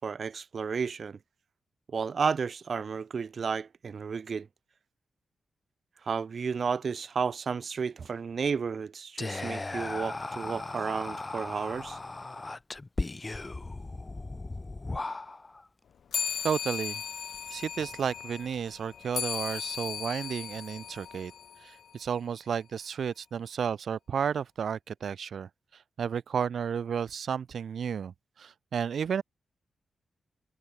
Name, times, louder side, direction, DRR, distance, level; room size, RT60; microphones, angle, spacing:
voice 1, 0.0-1.2 1.9-4.5 6.1-12.0, right 5 dB, 55° right, 4.1 m, -32 dB
Whispering, 9.2-15.6, left 2 dB, 25° left, 5.9 m, -37 dB
sound 1, 16.1-21.9, left 8 dB, 75° left, 4.2 m, -37 dB
voice 2, 16.4-17.0 17.5-21.3 21.6-25.5 26.0-29.2, right 7 dB, 70° right, 1.6 m, -32 dB
cardioid pair, 90°, 0 cm